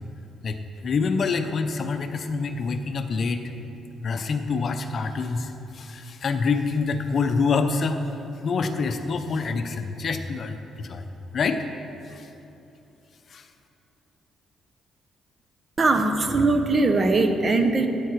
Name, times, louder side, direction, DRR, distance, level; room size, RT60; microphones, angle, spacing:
voice 1, 0.4-3.4 4.0-8.0 8.4-11.1 11.3-11.6 12.1-12.3 13.3-13.4, left 4 dB, 50° left, 7 dB, 0.8 m, -26 dB
voice 2, 15.8-17.9, right 3 dB, 35° right, 6 dB, 1.0 m, -20 dB
12.5 x 9.1 x 4.7 m, 3.0 s
cardioid pair, 90°, 0 cm